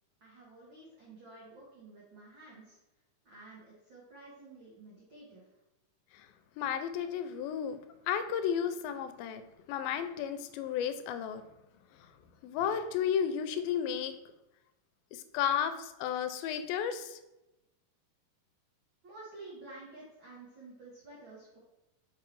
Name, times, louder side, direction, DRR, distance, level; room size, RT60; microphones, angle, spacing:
voice 1, 0.2-2.8 3.2-5.5 19.0-21.6, right 2 dB, 85° right, -6 dB, 1.0 m, -51 dB
voice 2, 6.6-7.8 8.1-9.4 9.7-11.4 12.4-14.1 15.1-17.2, left 8 dB, 85° left, 9 dB, 2.3 m, -33 dB
7.0 x 3.1 x 4.5 m, 0.97 s
omnidirectional pair, 4.1 m